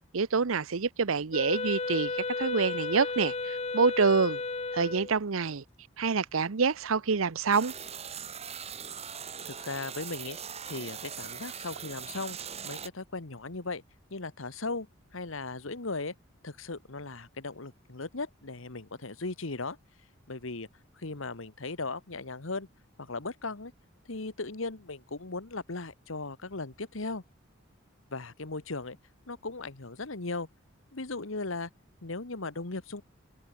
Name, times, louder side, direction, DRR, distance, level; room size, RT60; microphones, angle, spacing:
voice 1, 0.1-2.1 2.4-4.4 4.7-5.6 6.0-7.7, right 5 dB, 85° right, 0.8 m, -26 dB
Wind instrument woodwind instrument, 1.3-5.2, left 3 dB, 30° left, 1.0 m, -33 dB
sound 1, 7.5-12.9, right 7 dB, 30° right, 3.8 m, -41 dB
voice 2, 9.5-10.4 10.7-12.4 12.6-13.8 14.1-14.9 15.1-16.1 16.4-19.8 20.3-20.7 21.0-22.7 23.0-23.7 24.1-27.2 28.1-29.0 29.3-30.5 30.9-31.7 32.0-33.0, left 3 dB, 75° left, 1.6 m, -37 dB
open air
head